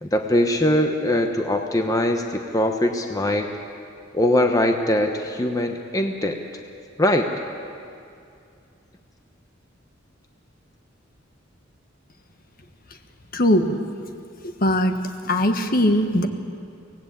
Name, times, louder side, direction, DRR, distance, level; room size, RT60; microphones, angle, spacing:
voice 1, 0.0-3.5 4.1-6.4 7.0-7.3, left 1 dB, 20° left, 4 dB, 1.0 m, -21 dB
voice 2, 13.3-13.7 14.6-14.9 15.3-16.3, left 1 dB, 50° left, 6 dB, 1.5 m, -19 dB
24.0 x 18.5 x 8.5 m, 2.4 s
head